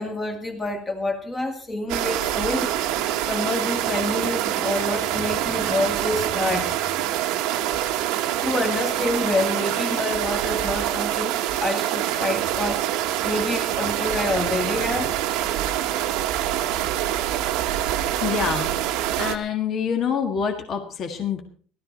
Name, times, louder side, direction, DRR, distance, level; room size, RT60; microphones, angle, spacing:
voice 1, 0.0-2.7 3.2-6.7 8.4-12.8 13.2-15.2, left 2 dB, 15° left, 4 dB, 2.3 m, -27 dB
sound 1, 1.9-19.4, right 12 dB, 60° right, 1.3 m, -25 dB
voice 2, 18.2-18.7 19.2-21.4, left 7 dB, 30° left, 4 dB, 1.8 m, -26 dB
17.0 x 13.0 x 4.3 m, 0.43 s
cardioid pair, 170°, 0 cm